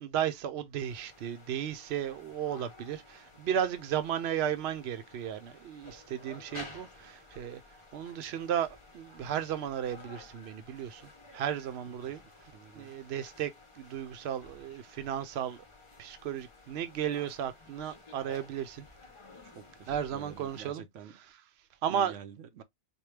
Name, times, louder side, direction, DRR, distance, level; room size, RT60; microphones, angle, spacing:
voice 1, 0.0-12.5 12.7-15.6 16.0-18.9 19.9-20.8 21.1-21.4 21.8-22.2, right 9 dB, 65° right, 0.9 m, -34 dB
sound 1, 0.8-20.7, left 3 dB, 30° left, 0.7 m, -53 dB
voice 2, 12.5-12.9 19.4-21.2 21.9-22.6, right 8 dB, 90° right, 1.0 m, -48 dB
4.5 x 2.2 x 3.2 m
omnidirectional pair, 1.2 m